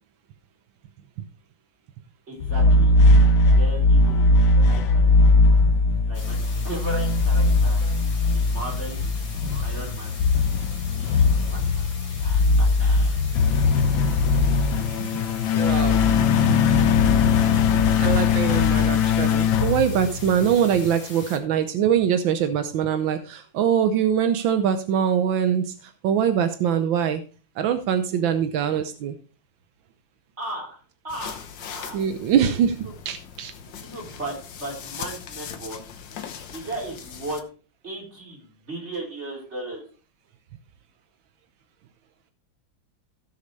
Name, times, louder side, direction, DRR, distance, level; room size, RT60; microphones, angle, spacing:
voice 1, 2.3-3.0 3.5-4.2 4.7-5.1 6.0-6.4 6.6-7.8 8.3-9.2 9.6-10.2 10.8-11.9 12.2-13.2 17.3-17.6 28.1-28.9 30.4-32.6 33.7-35.8 36.5-37.4 37.8-39.8, right 1 dB, 35° right, -2 dB, 4.3 m, -36 dB
sound 1, 2.4-20.6, left 3 dB, 90° left, 1.6 m, -19 dB
sound 2, 6.1-21.4, left 4 dB, 55° left, 2.6 m, -42 dB
voice 2, 15.5-16.1 18.0-27.2 27.6-29.2 31.9-33.5, right 8 dB, 85° right, 9 dB, 1.5 m, -23 dB
sound 3, 31.1-37.4, left 7 dB, 75° left, 1.7 m, -40 dB
17.0 x 6.7 x 3.2 m, 0.36 s
omnidirectional pair, 2.1 m